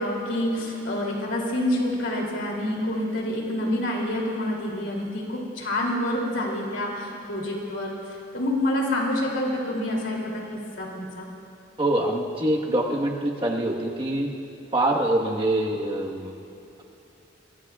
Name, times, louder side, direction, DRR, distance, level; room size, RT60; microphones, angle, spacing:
voice 1, 0.0-11.3, left 1 dB, 65° left, -1 dB, 2.9 m, -27 dB
voice 2, 11.8-14.3 14.7-16.3, right 1 dB, 25° right, -1 dB, 1.3 m, -24 dB
23.5 x 22.0 x 2.4 m, 2.8 s
head